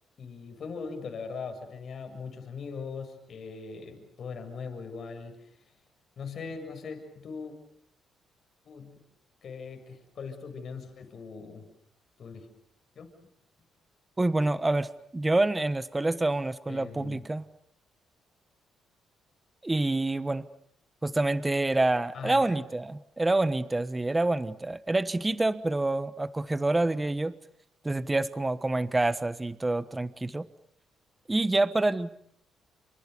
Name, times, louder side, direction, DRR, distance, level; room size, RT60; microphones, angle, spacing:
voice 1, 0.2-5.5 6.2-7.5 8.7-8.9 9.4-11.7 12.2-12.5 13.0-13.1 16.7-17.2 22.1-22.6, left 5 dB, 55° left, 4 dB, 7.2 m, -40 dB
voice 2, 14.2-17.4 19.6-20.5 21.0-27.3 27.8-30.5 31.3-32.1, right 2 dB, 15° right, 14 dB, 1.2 m, -27 dB
29.5 x 27.0 x 6.9 m, 0.68 s
cardioid pair, 90°, 0 cm